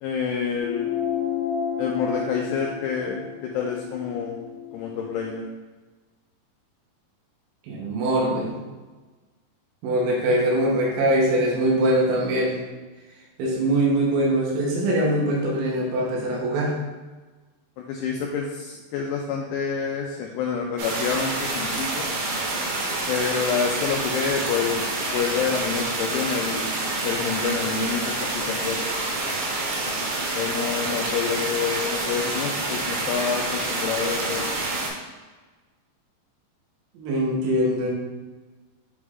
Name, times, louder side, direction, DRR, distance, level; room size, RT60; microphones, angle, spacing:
voice 1, 0.0-0.9 1.8-4.4 4.7-5.5 17.9-22.1 23.1-24.8 25.1-28.8 30.4-34.5, left 6 dB, 90° left, 0 dB, 2.4 m, -28 dB
sound 1, 0.6-5.4, left 7 dB, 70° left, 2.6 m, -31 dB
voice 2, 7.7-8.5 9.8-12.5 13.4-16.7 37.0-37.9, right 1 dB, 85° right, -4 dB, 3.6 m, -22 dB
sound 2, 20.8-34.9, right 2 dB, 70° right, 2.5 m, -27 dB
8.6 x 3.1 x 3.7 m, 1.3 s
omnidirectional pair, 5.3 m